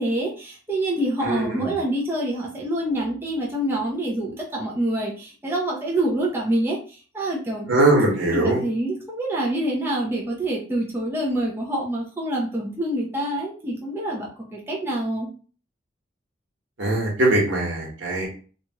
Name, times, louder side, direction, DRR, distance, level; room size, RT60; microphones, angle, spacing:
voice 1, 0.0-7.7 8.3-15.3, right 1 dB, 10° right, -4 dB, 0.5 m, -26 dB
voice 2, 1.2-1.7 7.7-8.6 16.8-18.3, right 2 dB, 75° right, -2 dB, 1.2 m, -21 dB
2.9 x 2.3 x 2.8 m, 0.40 s
head